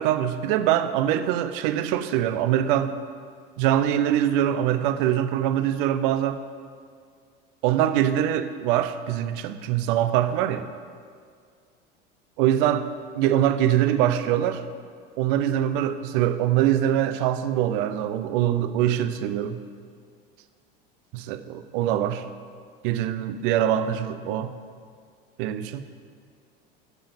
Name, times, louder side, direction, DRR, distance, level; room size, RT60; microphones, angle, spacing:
voice 1, 0.0-2.9 3.6-6.4 7.6-10.7 12.4-12.9 13.1-14.6 15.2-19.6 21.1-22.2 22.8-24.5 25.4-25.8, right 11 dB, 65° right, 12 dB, 0.7 m, -23 dB
11.0 x 7.0 x 5.5 m, 2.1 s
hypercardioid pair, 80°, 29 cm